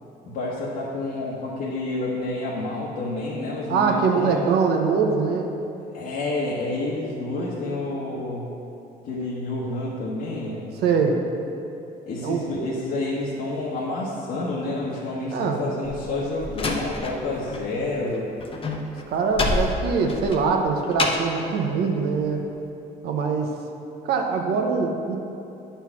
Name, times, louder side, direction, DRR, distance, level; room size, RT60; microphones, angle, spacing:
voice 1, 0.2-4.5 5.9-8.5 9.0-10.7 12.1-18.4, left 2 dB, 70° left, -6 dB, 1.3 m, -29 dB
voice 2, 3.7-5.5 10.8-11.2 12.2-12.4 15.3-15.7 19.1-22.4 23.0-23.5 24.0-25.2, right 5 dB, 70° right, 2 dB, 1.0 m, -23 dB
Slam, 15.8-17.7 17.9-21.4, left 3 dB, 30° left, 0.9 m, -28 dB
9.2 x 4.5 x 5.8 m, 2.8 s
cardioid pair, 110°, 17 cm